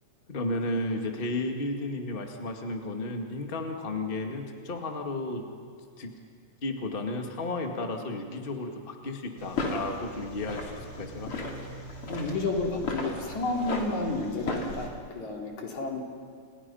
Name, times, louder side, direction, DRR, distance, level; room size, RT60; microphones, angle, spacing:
voice 1, 0.3-5.4 6.0-6.1 6.6-11.3, left 2 dB, 20° left, 3 dB, 1.9 m, -33 dB
sound 1, 9.4-14.9, left 2 dB, 45° left, 4.0 m, -35 dB
voice 2, 12.1-16.1, left 2 dB, 70° left, 0 dB, 4.5 m, -31 dB
30.0 x 29.5 x 5.7 m, 2.1 s
omnidirectional pair, 3.4 m